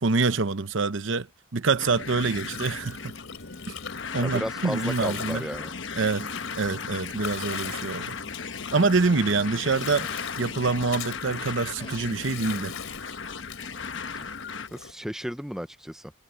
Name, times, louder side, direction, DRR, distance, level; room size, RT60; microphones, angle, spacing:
voice 1, 0.0-1.3 1.5-3.1 4.1-5.4 5.9-6.3 6.5-8.2 8.7-10.1 10.4-12.8, right 4 dB, 65° right, 0.8 m, -25 dB
Gurgling, 1.6-14.9, left 6 dB, 85° left, 3.1 m, -41 dB
sound 1, 1.8-14.7, left 5 dB, 65° left, 1.2 m, -37 dB
voice 2, 4.2-5.7 14.7-16.1, equal, ahead, 0.5 m, -34 dB
Fart, 9.9-10.5 11.8-12.0, left 3 dB, 25° left, 3.9 m, -46 dB
head